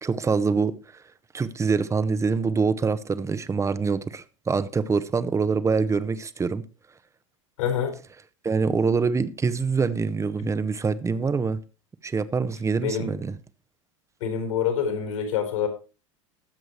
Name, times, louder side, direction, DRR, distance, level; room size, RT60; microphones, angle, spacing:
voice 1, 0.0-0.8 1.3-6.6 8.4-11.6 12.0-13.3, right 5 dB, 15° right, 1.0 m, -25 dB
voice 2, 7.6-7.9 12.8-13.1 14.2-15.7, left 7 dB, 70° left, 4.7 m, -26 dB
20.5 x 7.9 x 3.1 m
figure-of-eight pair, 85°, 17 cm